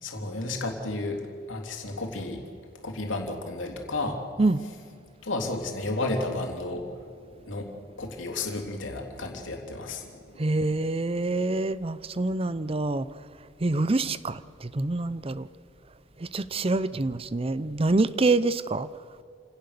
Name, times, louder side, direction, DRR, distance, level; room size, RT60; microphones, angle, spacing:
voice 1, 0.0-1.2 1.5-2.4 2.8-4.2 5.2-7.1 7.4-10.5, left 2 dB, 75° left, 2 dB, 3.3 m, -32 dB
voice 2, 10.4-13.1 13.6-15.5 16.2-18.9, right 2 dB, 30° right, 16 dB, 0.6 m, -26 dB
28.0 x 17.5 x 6.8 m, 2.3 s
head